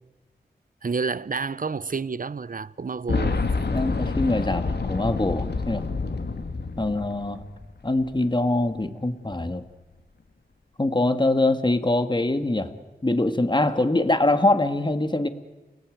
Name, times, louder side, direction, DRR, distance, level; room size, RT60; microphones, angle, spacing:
voice 1, 0.8-3.7, right 5 dB, 55° right, 0.8 m, -30 dB
Boom, 3.1-7.8 8.1-8.2 9.3-9.4, left 4 dB, 75° left, 1.8 m, -28 dB
voice 2, 3.7-5.8 6.8-7.4 7.8-9.6 10.8-12.7 13.0-15.3, left 2 dB, 25° left, 1.9 m, -23 dB
29.0 x 18.5 x 9.3 m
wide cardioid pair, 50°, 17 cm